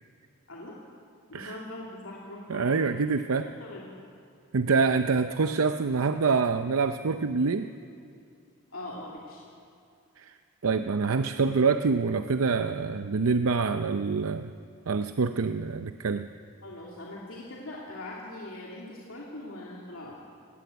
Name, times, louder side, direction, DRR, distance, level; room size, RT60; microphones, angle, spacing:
voice 1, 1.3-2.8 3.6-3.9 8.7-9.4 16.6-20.1, left 1 dB, 80° left, -4 dB, 2.7 m, -41 dB
voice 2, 2.5-3.5 4.5-7.7 10.2-10.3 10.6-14.5 14.9-16.3, right 4 dB, 85° right, 9 dB, 0.6 m, -26 dB
18.0 x 16.5 x 9.4 m, 2.5 s
head